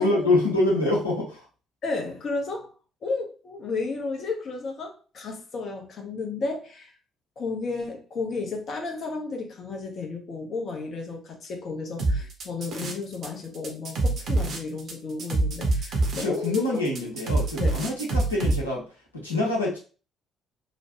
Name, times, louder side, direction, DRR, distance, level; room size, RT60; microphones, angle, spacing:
voice 1, 0.0-1.4 16.2-18.9 19.1-19.8, left 2 dB, 85° left, 0.9 m, -25 dB
voice 2, 1.8-2.7 3.0-6.9 7.4-17.1 17.6-17.8, left 3 dB, 45° left, 0.9 m, -33 dB
sound 1, 12.0-13.3 13.5-18.6, right 2 dB, 50° right, 0.7 m, -25 dB
3.0 x 2.2 x 2.9 m
figure-of-eight pair, 45°, 0 cm